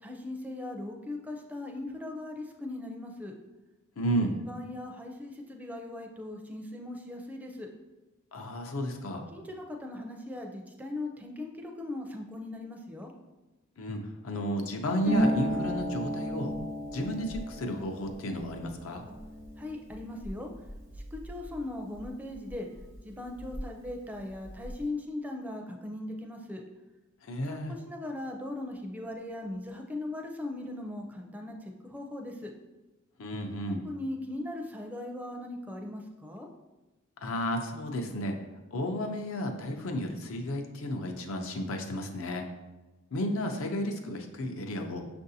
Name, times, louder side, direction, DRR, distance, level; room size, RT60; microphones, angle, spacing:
voice 1, 0.0-3.3 4.4-7.7 9.3-13.1 19.6-20.5 21.1-22.7 23.0-26.6 27.5-27.6 27.9-32.5 33.8-36.5, left 2 dB, 10° right, 2 dB, 0.4 m, -39 dB
voice 2, 4.0-4.4 8.3-9.2 13.8-14.0 14.2-16.5 16.9-19.0 27.2-27.7 33.2-33.8 37.2-38.4 38.7-42.5 43.1-45.1, equal, 80° left, 4 dB, 0.6 m, -32 dB
Harp, 15.0-22.5 22.8-23.9 24.2-24.8, equal, 65° right, 0.7 m, -35 dB
6.3 x 2.6 x 2.7 m, 1.1 s
head